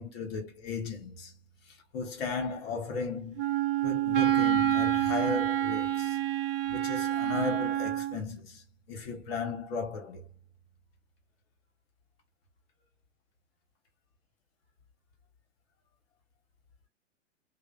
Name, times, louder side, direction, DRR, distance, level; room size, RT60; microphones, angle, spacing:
voice 1, 0.0-1.3 1.9-3.5 3.8-6.2 6.7-10.2, left 5 dB, 50° left, 1.0 m, -36 dB
Wind instrument woodwind instrument, 3.4-8.2, right 12 dB, 45° right, 0.5 m, -27 dB
2.7 x 2.1 x 2.5 m
hypercardioid pair, 110°, 38 cm